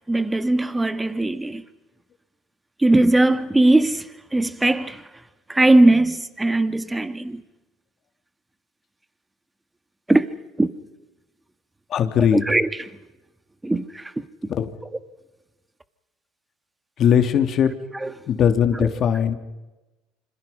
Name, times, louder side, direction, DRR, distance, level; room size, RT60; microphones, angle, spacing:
voice 1, 0.1-1.6 2.8-5.0 5.5-7.4 10.1-10.3 10.6-10.7 12.3-12.7 13.6-14.1 18.0-18.1, right 2 dB, 10° right, 1.7 m, -19 dB
voice 2, 11.9-12.4 14.6-14.7 17.0-17.7 18.3-19.4, left 8 dB, 45° left, 2.7 m, -19 dB
26.5 x 26.5 x 5.7 m
supercardioid pair, 90°, 0 cm